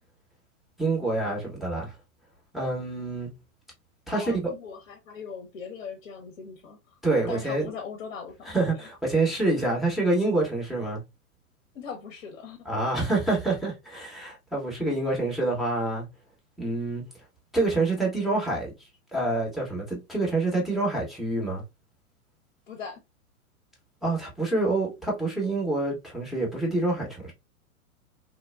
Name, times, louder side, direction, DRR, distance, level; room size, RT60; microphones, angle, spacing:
voice 1, 0.8-1.9 2.5-3.3 4.1-4.5 7.0-7.7 8.5-11.0 12.7-16.1 16.6-17.0 17.5-18.7 19.1-21.6 24.0-27.3, right 2 dB, ahead, 0.8 m, -27 dB
voice 2, 4.1-6.8 7.3-8.8 11.7-12.7 22.7-23.0, left 6 dB, 45° left, 0.8 m, -40 dB
3.2 x 2.2 x 2.2 m
figure-of-eight pair, 105°, 43 cm